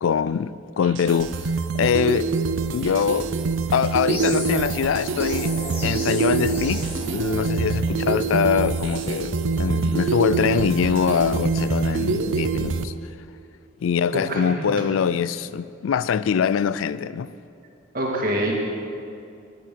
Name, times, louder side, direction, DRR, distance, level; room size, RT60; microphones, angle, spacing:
voice 1, 0.0-2.3 2.7-3.3 3.7-5.6 5.8-12.9 13.8-17.3, left 7 dB, 90° left, 0.4 m, -23 dB
sound 1, 0.8-12.8, right 4 dB, 80° right, 0.6 m, -25 dB
sound 2, 4.1-9.2, left 1 dB, 10° left, 2.8 m, -35 dB
voice 2, 14.1-14.7 17.9-18.6, right 1 dB, 45° right, 2.1 m, -25 dB
11.5 x 8.5 x 7.6 m
head